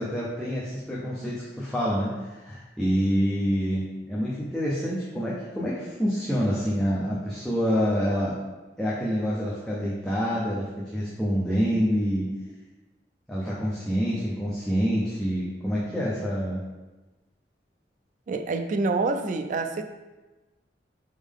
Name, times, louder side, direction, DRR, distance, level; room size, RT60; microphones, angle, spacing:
voice 1, 0.0-8.3 8.8-12.3 13.3-16.6, equal, 5° left, -8 dB, 0.6 m, -27 dB
voice 2, 18.3-19.8, right 3 dB, 45° right, 7 dB, 0.3 m, -27 dB
3.9 x 3.6 x 3.6 m, 1.1 s
head